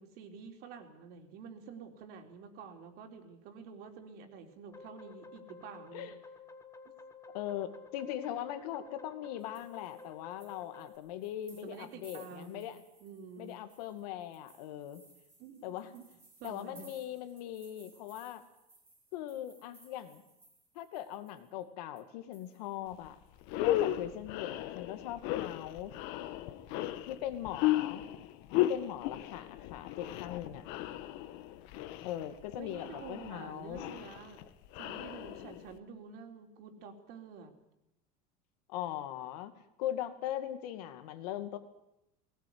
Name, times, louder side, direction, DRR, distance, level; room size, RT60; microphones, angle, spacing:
voice 1, 0.0-6.1 11.6-12.7 13.0-13.6 15.4-15.7 15.9-16.0 16.4-16.9 32.6-37.5, right 6 dB, 55° right, 4 dB, 3.9 m, -49 dB
sound 1, 4.7-11.0, left 4 dB, 15° left, 2.1 m, -52 dB
voice 2, 7.3-12.8 13.4-15.0 15.6-15.9 16.4-18.4 19.1-20.2 20.7-23.2 23.6-25.9 26.7-28.0 28.6-30.6 32.0-33.8 38.7-39.5 39.8-41.6, left 11 dB, 90° left, 9 dB, 2.4 m, -40 dB
sound 2, 9.4-21.6 22.0-22.1 22.3-23.5, right 2 dB, 10° right, 3.9 m, -62 dB
sound 3, 22.9-23.1 23.4-35.8, left 14 dB, 65° left, 1.6 m, -35 dB
20.0 x 19.0 x 9.7 m, 0.85 s
cardioid pair, 150°, 19 cm